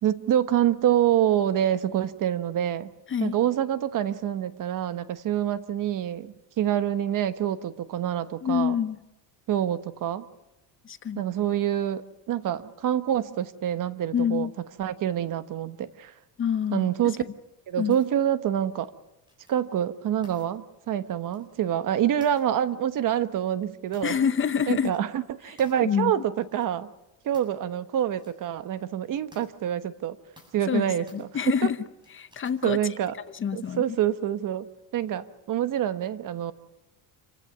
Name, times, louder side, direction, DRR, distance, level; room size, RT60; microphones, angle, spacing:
voice 1, 0.0-2.9 3.2-8.7 9.5-10.3 11.2-14.5 14.8-16.1 16.7-17.2 17.7-18.9 19.5-24.2 24.7-26.9 27.2-30.2 30.5-31.7 32.6-33.1 33.5-34.7 34.9-36.5, right 10 dB, 45° right, 12 dB, 1.2 m, -26 dB
voice 2, 8.4-9.0 10.8-11.2 14.1-14.5 16.4-16.9 17.8-18.0 24.0-24.9 25.8-26.1 30.6-31.8 32.1-32.8 33.4-33.8, left 7 dB, 25° left, 12 dB, 0.8 m, -26 dB
sound 1, 17.9-18.1 19.3-19.7 20.2-20.5 21.2-21.5 22.2-22.5 23.1-23.2 23.9-24.4 24.6-25.0 25.6-25.8 26.4-26.7 27.3-27.6 28.0-28.3 28.8-28.9 29.3-29.5 30.4-30.7 31.1-31.3 32.0-32.7, left 1 dB, 10° right, 7.5 m, -55 dB
28.0 x 16.0 x 9.5 m, 0.99 s
cardioid pair, 130°, 44 cm